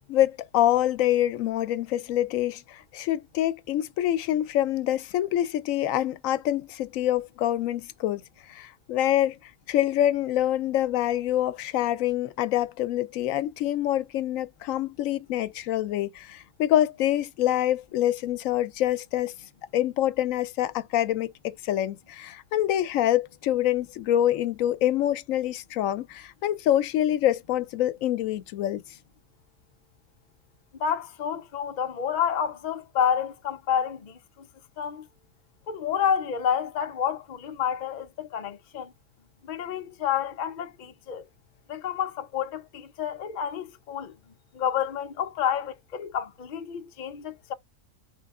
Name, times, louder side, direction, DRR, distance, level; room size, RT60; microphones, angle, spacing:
voice 1, 0.1-19.3 19.7-28.8, left 12 dB, 80° left, 1.0 m, -26 dB
voice 2, 30.8-34.5 34.8-35.0 35.7-38.9 39.4-41.2 41.7-44.1 44.5-47.5, left 8 dB, 50° left, 0.5 m, -29 dB
3.4 x 3.3 x 3.6 m
omnidirectional pair, 1.4 m